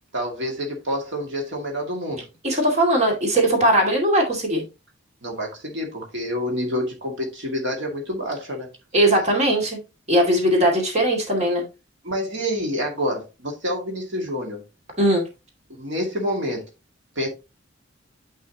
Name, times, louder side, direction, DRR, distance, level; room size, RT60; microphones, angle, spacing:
voice 1, 0.1-2.3 5.2-8.7 12.0-14.6 15.7-16.7 17.2-17.3, equal, 65° right, 2.3 m, -28 dB
voice 2, 2.4-4.6 8.9-9.8 10.1-11.6 15.0-15.2, right 1 dB, 35° right, 2.4 m, -19 dB
9.1 x 5.4 x 2.9 m
head